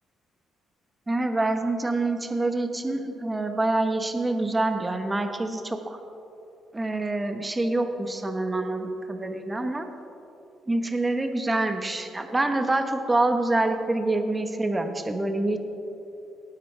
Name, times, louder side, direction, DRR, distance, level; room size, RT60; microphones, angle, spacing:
voice 1, 1.1-6.0 6.7-9.9 10.7-15.6, right 2 dB, 20° right, 6 dB, 1.1 m, -26 dB
18.5 x 9.2 x 3.4 m, 2.9 s
cardioid pair, 90°, 0 cm